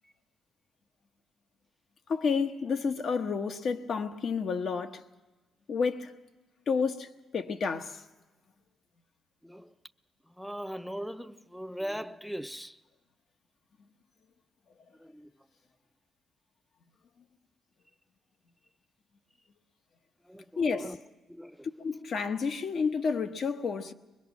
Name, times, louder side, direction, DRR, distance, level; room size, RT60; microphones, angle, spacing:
voice 1, 2.1-5.0 5.7-6.1 6.7-7.1 7.3-8.0 20.6-20.9 21.8-23.9, left 5 dB, 60° left, 1.0 m, -30 dB
voice 2, 9.4-9.7 10.3-12.8 15.0-15.3 20.3-21.0 21.3-21.7, equal, ahead, 0.6 m, -39 dB
22.5 x 21.0 x 6.1 m
supercardioid pair, 70°, 0 cm